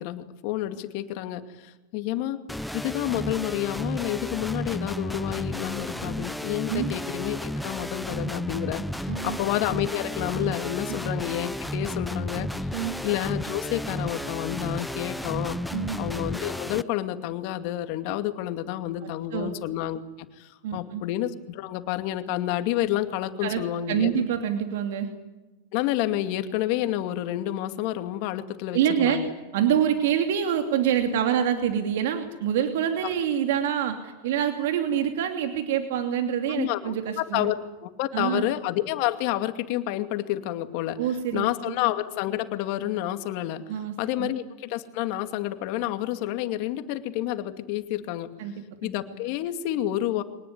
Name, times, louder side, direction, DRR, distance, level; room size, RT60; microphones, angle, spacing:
voice 1, 0.0-2.4 2.7-12.5 13.0-15.6 16.0-24.1 25.7-29.3 33.0-33.1 36.5-41.0 41.3-43.6 44.0-48.3 48.8-50.2, left 13 dB, 60° left, 9 dB, 2.4 m, -29 dB
sound 1, 2.5-16.8, equal, ahead, 0.8 m, -33 dB
voice 2, 9.1-9.4 10.9-11.0 12.7-12.9 15.7-16.0 19.0-19.5 20.6-21.0 23.4-23.6 23.9-25.1 28.7-29.2 29.5-37.5 38.1-38.5 41.0-41.7 43.7-44.3 48.4-48.5, right 9 dB, 70° right, 6 dB, 2.7 m, -26 dB
24.0 x 19.5 x 9.6 m, 1.1 s
hypercardioid pair, 105°, 0 cm